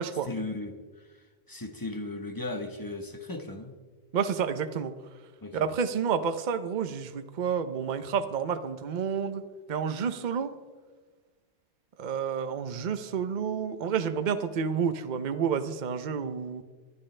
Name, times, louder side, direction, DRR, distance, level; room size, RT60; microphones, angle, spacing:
voice 1, 0.2-3.7 5.4-5.7, left 2 dB, 20° left, 5 dB, 1.1 m, -37 dB
voice 2, 4.1-4.9 5.5-9.4 9.7-10.5 12.0-16.6, right 7 dB, 45° right, 10 dB, 0.8 m, -30 dB
21.5 x 12.5 x 3.3 m, 1.4 s
omnidirectional pair, 1.2 m